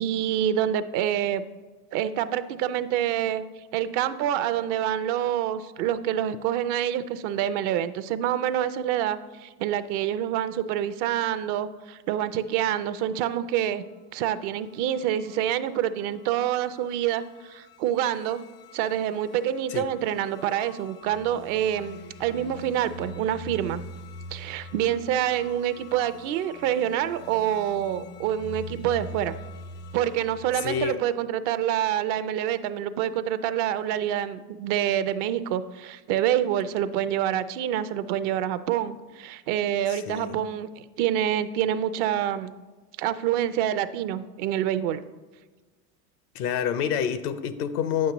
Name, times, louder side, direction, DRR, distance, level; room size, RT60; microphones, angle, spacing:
voice 1, 0.0-1.4 1.9-3.4 3.7-13.8 14.1-18.4 18.7-23.8 24.3-29.3 29.9-40.7 41.0-42.5 43.0-45.0, right 10 dB, 55° right, 13 dB, 0.6 m, -27 dB
sound 1, 14.7-30.9, left 1 dB, 25° left, 0.4 m, -44 dB
voice 2, 30.5-31.0 39.9-40.5 46.3-48.1, left 8 dB, 70° left, 12 dB, 0.7 m, -28 dB
9.0 x 7.4 x 3.0 m, 1.3 s
hypercardioid pair, 95°, 47 cm